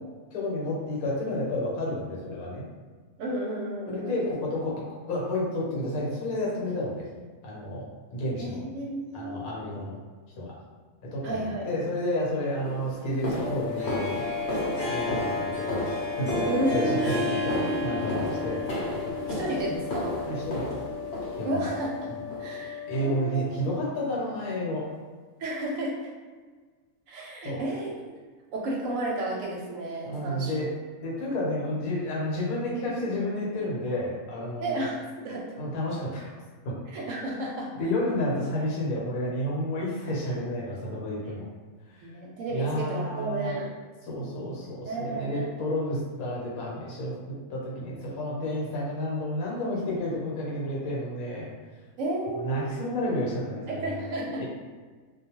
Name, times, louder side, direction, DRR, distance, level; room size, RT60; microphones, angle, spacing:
voice 1, 0.3-2.7 3.9-7.1 7.4-7.8 8.1-8.6 9.1-10.0 10.4-10.5 11.1-14.2 14.8-18.6 19.1-19.2 20.3-20.7 21.4-21.7 22.1-22.2 22.9-24.9 27.4-27.6 30.0-30.7 31.0-34.8 35.6-36.3 36.6-36.7 37.7-41.5 42.5-43.6 44.0-47.1 47.5-51.5 52.3-54.0 54.4-54.5, left 1 dB, 75° left, -4 dB, 1.2 m, -31 dB
voice 2, 3.2-4.1 8.4-9.5 11.2-11.7 16.5-16.9 19.4-20.2 21.4-22.1 22.4-23.4 25.4-26.1 27.1-27.9 28.5-30.5 34.6-35.5 36.9-37.7 42.0-43.7 44.5-44.6 44.9-45.5 52.0-52.7 53.7-54.4, right 1 dB, 70° right, -2 dB, 0.9 m, -32 dB
sound 1, 11.9-12.1 12.6-21.8 22.3-22.7 22.9-23.1 23.5-23.7 24.1-24.2 24.7-24.8, equal, 55° left, 0.8 m, -34 dB
sound 2, 13.4-23.1, left 9 dB, 20° right, 1.0 m, -36 dB
Harp, 13.7-22.0, equal, 10° left, 0.6 m, -34 dB
2.4 x 2.2 x 2.9 m, 1.4 s
omnidirectional pair, 1.5 m